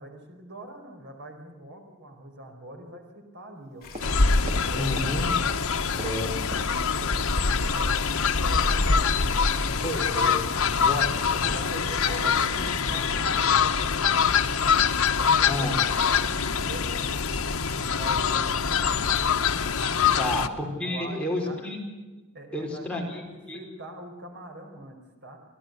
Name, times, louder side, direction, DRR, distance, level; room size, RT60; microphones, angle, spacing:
voice 1, 0.0-3.9 4.7-4.9 7.1-10.0 11.5-14.6 15.1-16.2 16.5-19.2 19.9-20.4 20.8-21.6 22.3-25.4, right 1 dB, 55° right, 4 dB, 4.7 m, -43 dB
sound 1, 3.8-13.5, left 3 dB, 45° left, 7.8 m, -44 dB
sound 2, 3.9-5.2 5.4-7.2 7.5-8.3 8.6-8.8 9.1-9.3 9.6-9.9 10.1-10.2, right 1 dB, 30° right, 2.6 m, -43 dB
Fowl, 4.0-20.5, left 6 dB, 80° left, 1.2 m, -24 dB
voice 2, 4.7-5.3 5.9-6.3 9.8-11.5 12.1-12.2 15.5-15.8 20.2-21.8 22.5-23.6, left 1 dB, 5° left, -1 dB, 5.0 m, -31 dB
26.0 x 17.0 x 8.1 m, 1.2 s
head